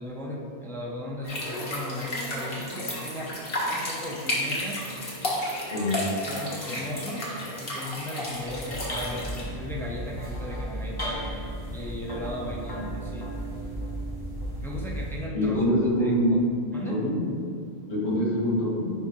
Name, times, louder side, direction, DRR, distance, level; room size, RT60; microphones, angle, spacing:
voice 1, 0.0-3.3 3.7-4.8 6.2-7.3 7.6-11.4 11.7-13.3 14.6-15.6 16.0-16.1 16.7-17.0, left 1 dB, 5° left, -3 dB, 0.6 m, -36 dB
sound 1, 1.2-9.4, left 1 dB, 60° left, 1.6 m, -32 dB
sound 2, 8.4-15.3, right 1 dB, 25° left, 0.9 m, -35 dB
voice 2, 15.3-16.4 16.9-17.2 17.9-18.9, equal, 80° left, -5 dB, 1.8 m, -24 dB
10.5 x 3.5 x 3.1 m, 2.4 s
omnidirectional pair, 1.1 m